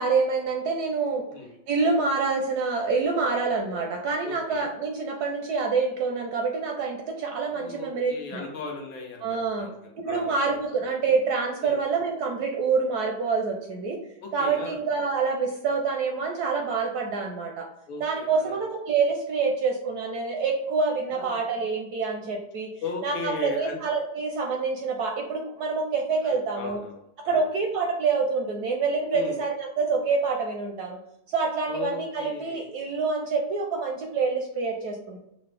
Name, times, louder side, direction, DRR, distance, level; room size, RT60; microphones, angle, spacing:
voice 1, 0.0-1.2 1.7-8.4 9.2-9.7 10.0-14.0 14.3-17.7 18.0-22.7 23.0-26.8 27.3-31.0 31.3-35.2, right 4 dB, 75° right, 2 dB, 0.9 m, -26 dB
voice 2, 4.2-4.7 7.5-10.6 11.6-11.8 14.2-14.8 17.9-18.6 21.1-21.4 22.8-23.8 26.2-27.0 27.2-27.4 29.1-29.4 31.7-32.6, left 4 dB, 90° left, 1 dB, 1.7 m, -37 dB
5.6 x 2.1 x 3.2 m, 0.85 s
omnidirectional pair, 2.1 m